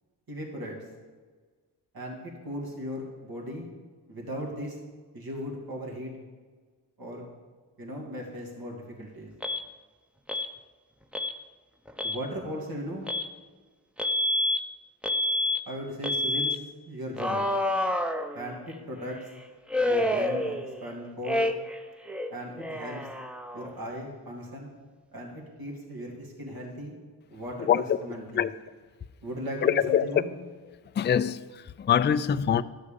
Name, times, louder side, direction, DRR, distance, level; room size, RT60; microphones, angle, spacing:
voice 1, 0.3-0.8 1.9-3.7 4.1-4.8 5.1-6.1 7.0-7.3 7.8-9.3 12.0-13.1 15.7-16.6 16.9-17.5 18.3-19.3 19.9-21.5 22.3-23.1 23.5-24.7 25.1-26.9 27.3-28.5 29.2-30.3, equal, 55° right, 2.6 m, -37 dB
Alarm, 9.4-9.6 10.3-10.5 11.1-11.3 11.9-12.2 13.1-13.3 14.0-14.6 15.0-15.6 16.0-16.6 17.2-18.7 19.7-20.9 21.2-21.8 22.1-23.8, left 1 dB, 5° right, 0.7 m, -28 dB
voice 2, 27.7-28.0 28.3-28.5 29.6-30.2 30.9-32.6, left 9 dB, 25° left, 0.4 m, -24 dB
12.0 x 6.4 x 5.3 m
supercardioid pair, 45°, 42 cm